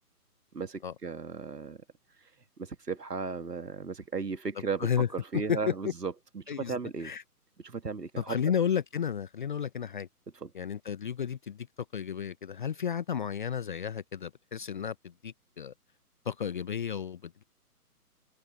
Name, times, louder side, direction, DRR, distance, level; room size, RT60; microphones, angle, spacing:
voice 1, 0.5-1.8 2.2-2.3 2.6-7.1 7.6-8.4 10.3-10.5, right 4 dB, 85° right, 1.6 m, -36 dB
voice 2, 8.2-10.1 10.5-11.7 11.9-15.7 16.3-17.4, left 8 dB, 30° left, 0.8 m, -32 dB
figure-of-eight pair, 140°, 47 cm